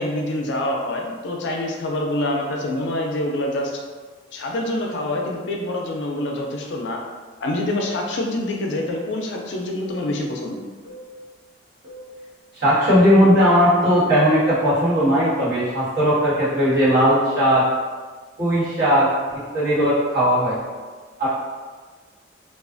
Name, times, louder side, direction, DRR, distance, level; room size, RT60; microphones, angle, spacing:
voice 1, 0.0-3.7 4.3-7.0 7.4-10.6, left 1 dB, 65° left, 1 dB, 0.3 m, -26 dB
sound 1, 8.8-9.1 9.8-10.1 10.8-11.1 11.8-12.1 12.8-13.1 13.8-14.2, equal, 75° right, 1.1 m, -41 dB
voice 2, 12.6-17.6 18.4-19.1 19.5-20.6 21.2-21.3, equal, 50° right, -13 dB, 1.4 m, -17 dB
2.3 x 2.3 x 2.4 m, 1.4 s
head